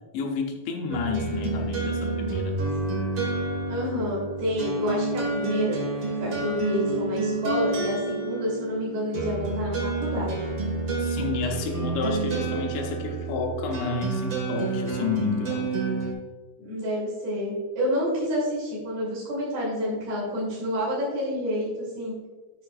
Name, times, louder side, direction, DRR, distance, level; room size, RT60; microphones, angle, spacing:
voice 1, 0.1-2.6 11.0-15.7, left 5 dB, 80° left, 2 dB, 3.1 m, -30 dB
sound 1, 0.9-16.1, right 3 dB, 60° right, 1.4 m, -29 dB
voice 2, 3.7-5.8 6.2-10.4 16.6-22.1, equal, 40° right, -7 dB, 3.3 m, -28 dB
10.0 x 8.8 x 2.5 m, 1.3 s
omnidirectional pair, 5.2 m